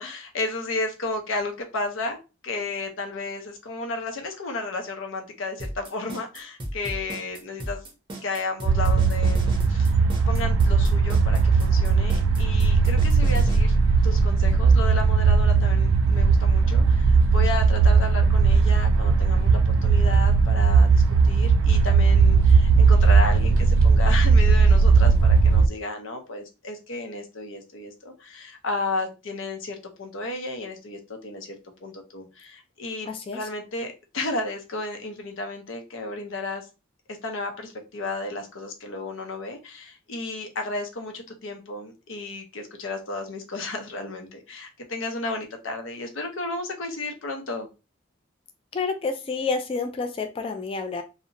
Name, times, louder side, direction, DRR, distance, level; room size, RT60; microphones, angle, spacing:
voice 1, 0.0-2.2 2.4-7.8 8.2-9.9 10.3-13.8 14.0-36.7 37.1-47.7, left 2 dB, 75° left, 4 dB, 0.6 m, -33 dB
sound 1, 5.6-13.6, right 1 dB, 25° right, 0.6 m, -35 dB
sound 2, 8.7-25.7, right 4 dB, 80° right, 0.3 m, -18 dB
voice 2, 33.1-33.4 48.7-51.0, left 4 dB, 30° left, 6 dB, 0.3 m, -29 dB
2.7 x 2.0 x 2.6 m, 0.29 s
head